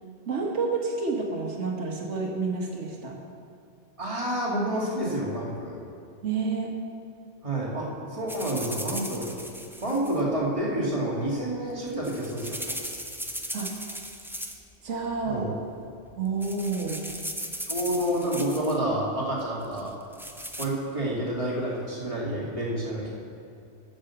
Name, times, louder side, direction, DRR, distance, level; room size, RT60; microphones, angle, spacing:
voice 1, 0.3-3.2 6.2-6.7 9.9-10.0 13.5-13.7 14.8-15.6 16.2-17.0, right 4 dB, 75° right, 0 dB, 1.5 m, -29 dB
voice 2, 4.0-5.8 7.4-9.3 9.8-12.8 15.2-15.5 17.6-19.9 20.6-23.1, right 1 dB, 25° right, -5 dB, 2.1 m, -29 dB
sound 1, 8.3-10.2 11.7-14.8 15.0-15.5 16.0-16.1 16.4-18.8 19.8-20.7, equal, 5° right, 0.3 m, -37 dB
8.6 x 7.0 x 6.8 m, 2.5 s
omnidirectional pair, 1.2 m